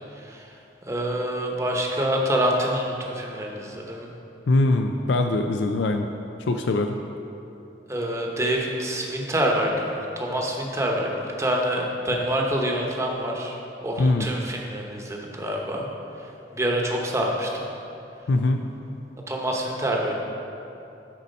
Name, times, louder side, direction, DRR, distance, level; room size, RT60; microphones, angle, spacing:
voice 1, 0.9-4.1 7.9-13.6 13.8-15.9 16.5-17.7 19.3-20.2, right 1 dB, 15° right, 0 dB, 0.9 m, -26 dB
voice 2, 4.5-6.1 6.5-7.0 14.0-14.3 18.3-18.6, left 2 dB, 90° left, 5 dB, 0.4 m, -22 dB
10.5 x 4.2 x 5.4 m, 2.8 s
head